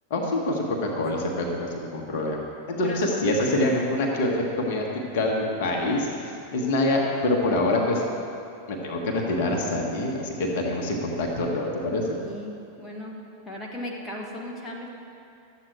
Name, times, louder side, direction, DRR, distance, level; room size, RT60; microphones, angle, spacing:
voice 1, 0.1-2.4 2.7-8.0 8.7-12.2, left 1 dB, 50° left, 0 dB, 1.4 m, -25 dB
voice 2, 12.1-13.2 13.4-14.9, left 1 dB, 15° left, -2 dB, 1.3 m, -37 dB
12.0 x 7.7 x 4.5 m, 2.7 s
figure-of-eight pair, 90°, 0 cm